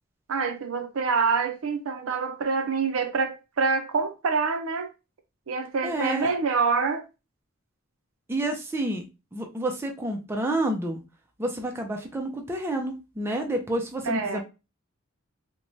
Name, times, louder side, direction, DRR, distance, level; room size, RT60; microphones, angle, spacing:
voice 1, 0.3-4.9 5.5-7.0 14.0-14.4, right 5 dB, 85° right, 0.6 m, -26 dB
voice 2, 5.8-6.3 8.3-9.0 9.3-11.0 11.4-14.4, right 1 dB, 10° right, 0.4 m, -29 dB
3.0 x 2.2 x 2.6 m
head